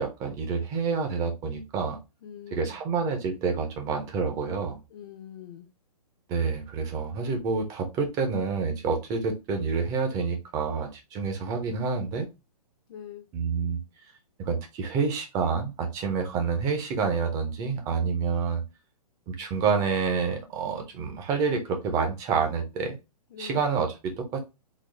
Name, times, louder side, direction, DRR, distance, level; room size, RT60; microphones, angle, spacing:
voice 1, 0.0-2.0 2.5-4.8 6.3-12.3 13.3-13.8 14.4-18.6 19.3-23.0 23.4-24.4, right 5 dB, 15° right, 5 dB, 0.5 m, -28 dB
voice 2, 2.2-2.8 4.9-5.7 12.9-13.3 23.3-23.6, left 9 dB, 35° left, 3 dB, 0.6 m, -43 dB
3.9 x 2.2 x 3.2 m, 0.25 s
hypercardioid pair, 155°, 20 cm